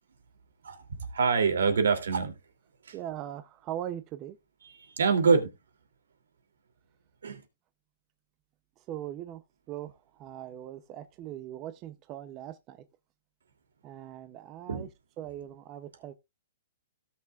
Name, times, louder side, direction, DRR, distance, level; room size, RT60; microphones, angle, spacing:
voice 1, 1.1-2.4 2.8-2.9 4.8-5.5 7.2-7.4 14.7-14.9, right 5 dB, 85° right, 2.7 m, -25 dB
voice 2, 2.9-4.4 8.8-12.8 13.8-14.9 15.2-16.1, right 11 dB, 25° right, 0.6 m, -40 dB
17.5 x 5.9 x 2.4 m
hypercardioid pair, 160°, 0 cm